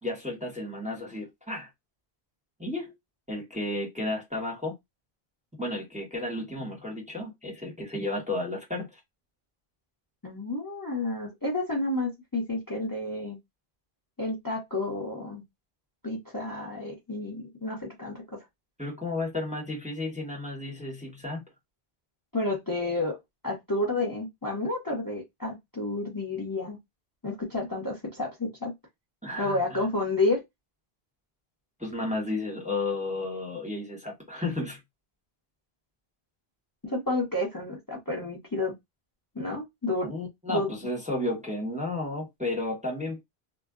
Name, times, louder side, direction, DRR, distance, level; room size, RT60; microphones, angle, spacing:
voice 1, 0.0-1.7 2.6-2.9 3.3-4.7 5.6-9.0 18.8-21.4 29.2-29.9 31.8-34.8 40.0-43.2, left 2 dB, 5° right, 0.9 m, -33 dB
voice 2, 10.2-13.4 14.2-15.4 16.0-18.4 22.3-23.2 23.4-26.8 27.2-28.7 29.4-30.4 36.8-38.7 39.3-40.1 40.5-40.7, left 2 dB, 20° left, 0.8 m, -30 dB
2.2 x 2.1 x 3.6 m
omnidirectional pair, 1.1 m